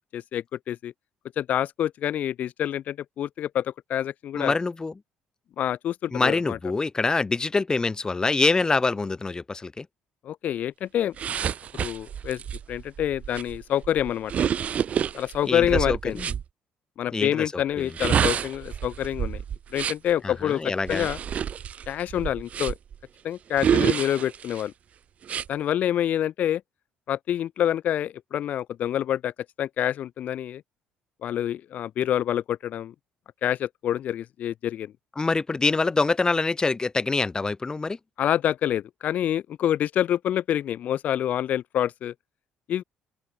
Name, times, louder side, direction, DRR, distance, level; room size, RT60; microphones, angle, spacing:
voice 1, 0.1-0.9 1.4-4.5 5.6-6.6 10.2-11.1 11.7-12.4 12.7-14.3 15.1-16.2 17.0-19.4 19.7-21.2 21.9-22.7 23.2-24.7 25.5-26.6 27.1-29.3 29.6-30.6 31.2-32.9 33.4-34.9 38.2-42.1 42.7-42.8, left 11 dB, 60° left, 2.4 m, -27 dB
voice 2, 4.3-4.9 6.1-9.9 15.4-16.3 17.1-17.9 20.2-21.1 35.2-38.0, left 3 dB, 25° left, 4.2 m, -25 dB
sound 1, 11.2-16.4 17.8-20.1 20.8-23.0 23.6-24.6 25.2-25.5, right 8 dB, 50° right, 1.6 m, -28 dB
open air
supercardioid pair, 65°, 3 cm